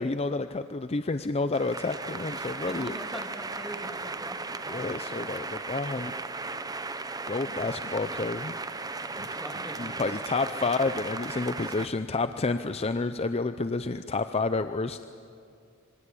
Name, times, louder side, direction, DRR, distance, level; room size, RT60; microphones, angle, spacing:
voice 1, 0.0-2.9 4.7-6.1 7.3-8.5 9.2-9.3 9.8-15.0, left 3 dB, 30° left, 10 dB, 0.6 m, -30 dB
sound 1, 1.5-11.9, right 3 dB, 20° right, 0.9 m, -36 dB
voice 2, 2.6-5.2 9.0-10.6, equal, ahead, 1 dB, 3.1 m, -44 dB
26.5 x 24.5 x 8.5 m, 2.4 s
head